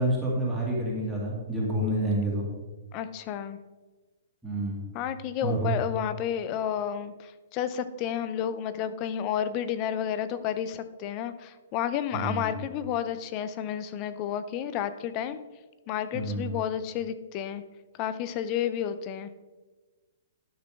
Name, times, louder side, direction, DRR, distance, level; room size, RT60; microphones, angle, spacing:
voice 1, 0.0-2.5 4.4-4.8 5.4-5.7 12.1-12.5 16.1-16.5, right 1 dB, 5° right, -6 dB, 1.9 m, -28 dB
voice 2, 2.9-3.6 4.9-15.4 15.9-17.6 18.0-19.3, left 9 dB, 25° left, 13 dB, 0.5 m, -31 dB
12.0 x 6.0 x 3.5 m, 1.2 s
hypercardioid pair, 170°, 0 cm